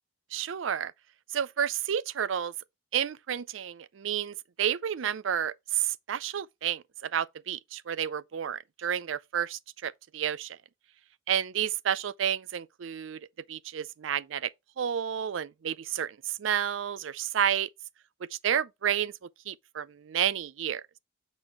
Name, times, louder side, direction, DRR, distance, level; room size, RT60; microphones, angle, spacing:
voice 1, 0.3-0.9 1.3-2.5 2.9-10.6 11.3-13.2 13.5-14.5 14.8-17.7 18.4-19.1 19.5-20.8, right 9 dB, 75° right, 0.4 m, -30 dB
7.8 x 4.2 x 4.2 m
head